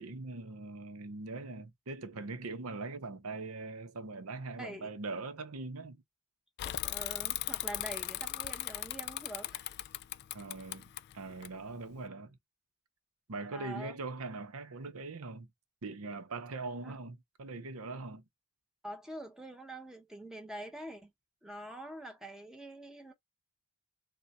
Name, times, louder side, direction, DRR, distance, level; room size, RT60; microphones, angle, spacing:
voice 1, 0.0-6.0 10.3-10.9 11.1-12.4 13.3-15.5 15.8-18.2, right 3 dB, 70° right, 0.7 m, -41 dB
voice 2, 4.6-4.9 6.6-9.6 13.5-14.0 16.8-16.9 18.8-21.1 21.4-23.1, right 1 dB, 5° right, 0.9 m, -45 dB
Bicycle / Mechanisms, 6.6-12.0, left 14 dB, 50° left, 0.3 m, -38 dB
3.8 x 2.2 x 4.1 m
head